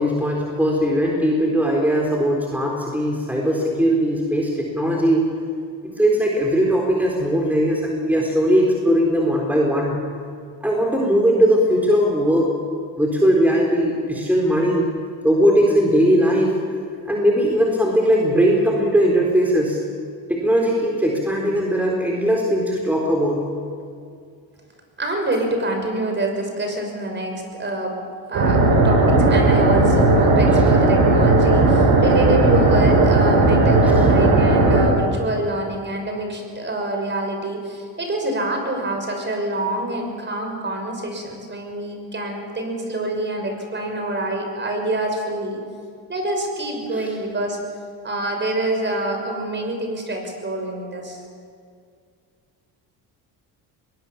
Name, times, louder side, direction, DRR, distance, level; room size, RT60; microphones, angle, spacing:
voice 1, 0.0-5.3 6.0-10.0 10.6-12.5 13.0-14.9 15.2-16.5 17.0-19.8 20.3-23.4 46.9-47.1, equal, 5° right, -2 dB, 4.0 m, -19 dB
voice 2, 25.0-28.0 28.3-45.6 46.1-47.6 48.0-51.2, right 1 dB, 30° right, 3 dB, 6.0 m, -26 dB
sound 1, 28.3-34.8, right 2 dB, 70° right, 7.8 m, -15 dB
22.5 x 20.0 x 7.2 m, 2.2 s
cardioid pair, 95°, 38 cm